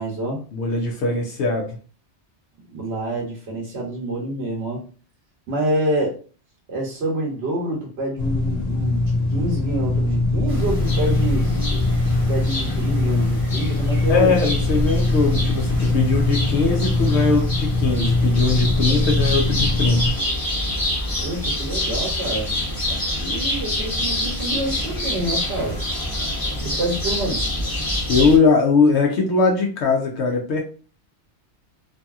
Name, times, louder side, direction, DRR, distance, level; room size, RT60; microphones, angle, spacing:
voice 1, 0.0-0.4 2.7-4.8 5.5-6.2 6.7-11.4 12.3-14.3 21.1-22.5 22.9-25.8 26.6-27.4, right 1 dB, 70° right, -1 dB, 1.0 m, -27 dB
voice 2, 0.5-1.8 14.1-20.2 28.1-30.6, left 4 dB, 75° left, 0 dB, 0.9 m, -20 dB
sound 1, 8.2-20.1, left 2 dB, 50° left, 0.5 m, -21 dB
sound 2, 10.5-28.4, left 1 dB, 20° left, 1.0 m, -27 dB
2.7 x 2.6 x 2.3 m, 0.37 s
omnidirectional pair, 1.2 m